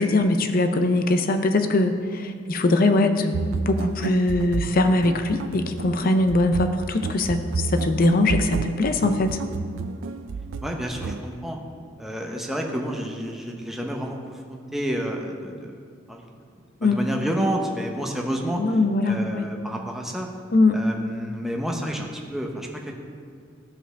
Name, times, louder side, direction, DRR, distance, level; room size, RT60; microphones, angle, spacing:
voice 1, 0.0-9.4 16.8-17.1 18.5-19.5 20.5-20.8, left 2 dB, 50° left, 7 dB, 0.5 m, -21 dB
sound 1, 3.3-11.2, right 4 dB, 80° right, 0.4 m, -30 dB
voice 2, 10.6-11.6 12.0-15.7 16.1-16.3 16.8-18.6 19.0-20.3 20.7-22.9, equal, ahead, 1 dB, 0.8 m, -30 dB
14.0 x 5.1 x 3.3 m, 2.2 s
head